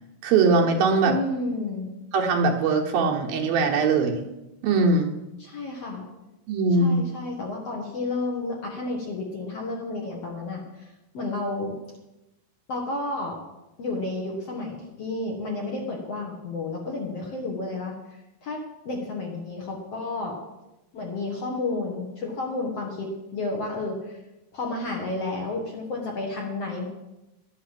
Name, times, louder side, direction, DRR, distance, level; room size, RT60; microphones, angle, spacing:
voice 1, 0.2-1.1 2.1-4.2 4.6-5.1 6.5-7.0, right 4 dB, 75° right, 0 dB, 3.0 m, -21 dB
voice 2, 1.0-1.9 5.4-6.1 6.8-11.8 12.7-13.4 13.8-17.9 18.4-20.4 20.9-24.2 24.5-26.8, left 2 dB, 55° left, 0 dB, 2.0 m, -31 dB
12.0 x 8.4 x 7.6 m, 0.98 s
omnidirectional pair, 4.4 m